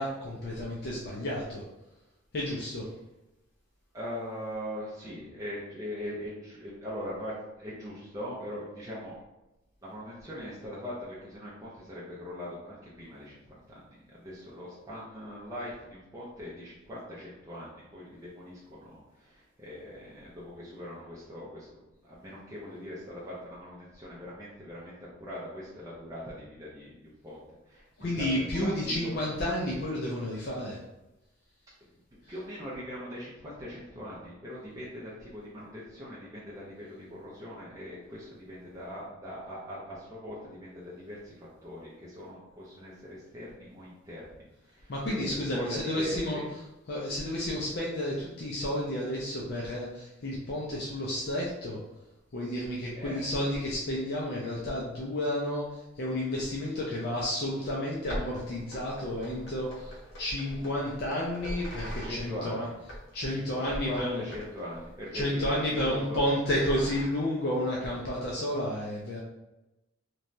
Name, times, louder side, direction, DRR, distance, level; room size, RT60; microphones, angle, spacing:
voice 1, 0.0-1.6 2.3-2.9 28.0-30.8 44.9-46.4 46.9-51.8 52.3-62.7 63.1-64.2 65.1-69.2, left 1 dB, 55° left, -4 dB, 0.4 m, -31 dB
voice 2, 3.9-9.2 9.8-13.4 13.7-21.7 22.0-27.4 27.7-29.2 32.1-46.5 53.0-53.3 62.0-62.7 63.3-66.2, left 1 dB, 15° right, -7 dB, 0.4 m, -41 dB
sound 1, 58.1-62.3 62.8-63.3 63.6-63.9 64.3-64.5 64.7-65.0 65.4-66.0 66.5-67.0, equal, 75° left, 1.2 m, -41 dB
3.1 x 2.2 x 2.6 m, 0.98 s
head